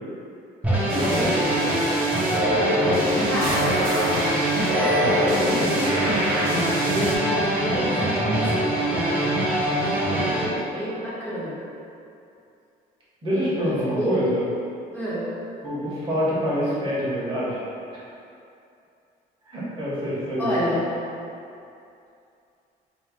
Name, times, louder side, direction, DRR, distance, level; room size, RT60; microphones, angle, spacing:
sound 1, 0.6-10.4, right 1 dB, 10° right, 0.9 m, -24 dB
voice 1, 0.8-1.8 2.2-3.6 4.5-11.6 13.3-14.3 14.9-15.3 20.4-20.9, equal, 10° left, -11 dB, 1.4 m, -30 dB
sound 2, 0.9-7.1, equal, 60° right, 0.7 m, -26 dB
voice 2, 13.2-14.4 15.6-17.6 19.5-20.6, equal, 30° right, -9 dB, 1.4 m, -26 dB
4.5 x 3.0 x 2.3 m, 2.6 s
cardioid pair, 110°, 17 cm